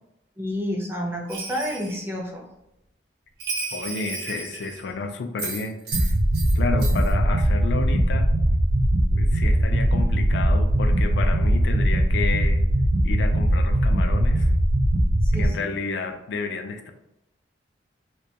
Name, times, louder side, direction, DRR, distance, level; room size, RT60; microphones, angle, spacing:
voice 1, 0.4-2.4 15.2-15.7, equal, 15° right, -1 dB, 0.4 m, -30 dB
Bell, 1.3-2.0 3.4-4.9 5.4-6.5 6.8-7.1, right 4 dB, 60° right, 0.8 m, -33 dB
voice 2, 3.7-6.1 6.6-8.3 9.1-12.6 13.0-14.5 15.3-16.9, left 4 dB, 70° left, 7 dB, 0.3 m, -31 dB
sound 1, 5.9-15.5, right 1 dB, 85° right, 0.4 m, -20 dB
2.2 x 2.2 x 2.6 m, 0.89 s
head